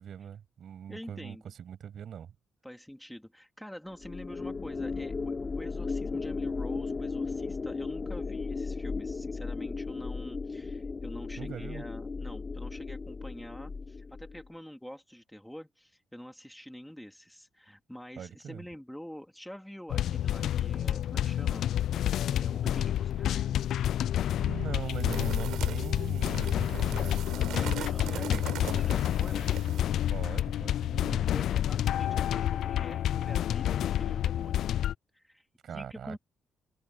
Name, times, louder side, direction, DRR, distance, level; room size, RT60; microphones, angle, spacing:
voice 1, 0.0-2.3 11.4-11.8 18.2-18.6 24.3-27.2 30.1-31.3 35.6-36.2, right 8 dB, 60° right, 7.9 m, -40 dB
voice 2, 0.9-1.5 2.6-21.7 22.3-23.5 27.5-29.5 31.0-34.7 35.1-36.2, equal, 5° left, 3.1 m, -46 dB
sound 1, 4.0-14.5, left 4 dB, 30° left, 3.6 m, -35 dB
sound 2, 19.9-34.9, left 11 dB, 75° left, 0.3 m, -29 dB
sound 3, 24.9-30.0, right 12 dB, 80° right, 5.4 m, -41 dB
cardioid pair, 90°, 0 cm